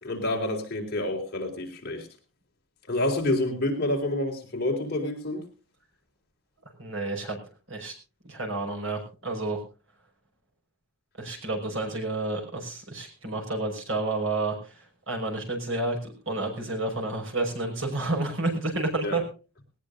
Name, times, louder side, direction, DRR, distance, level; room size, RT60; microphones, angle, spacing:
voice 1, 0.0-2.1 2.9-5.4 19.0-19.2, left 1 dB, 45° left, 1 dB, 4.0 m, -28 dB
voice 2, 6.8-7.4 7.7-7.9 8.2-9.6 11.2-19.2, right 2 dB, 60° right, 2 dB, 5.5 m, -30 dB
19.5 x 18.5 x 2.6 m, 0.33 s
head